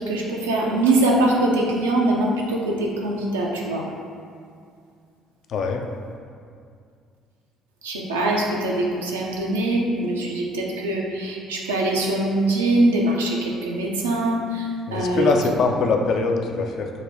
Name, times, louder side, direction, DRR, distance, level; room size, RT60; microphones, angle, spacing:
voice 1, 0.0-3.8 7.8-15.3, right 1 dB, 85° right, -2 dB, 0.4 m, -23 dB
voice 2, 5.5-5.8 14.9-16.9, left 4 dB, 55° left, 3 dB, 0.3 m, -22 dB
4.8 x 2.2 x 2.6 m, 2.3 s
hypercardioid pair, 55°, 0 cm